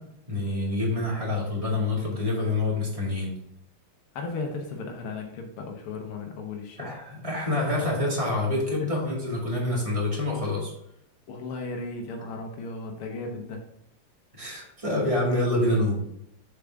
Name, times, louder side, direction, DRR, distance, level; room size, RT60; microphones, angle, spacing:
voice 1, 0.3-3.3 6.8-10.7 14.4-16.0, left 2 dB, 15° right, -4 dB, 2.1 m, -26 dB
voice 2, 4.1-7.0 8.8-8.9 11.3-13.6, left 3 dB, 85° left, 2 dB, 1.8 m, -35 dB
6.8 x 4.9 x 3.6 m, 0.80 s
omnidirectional pair, 2.3 m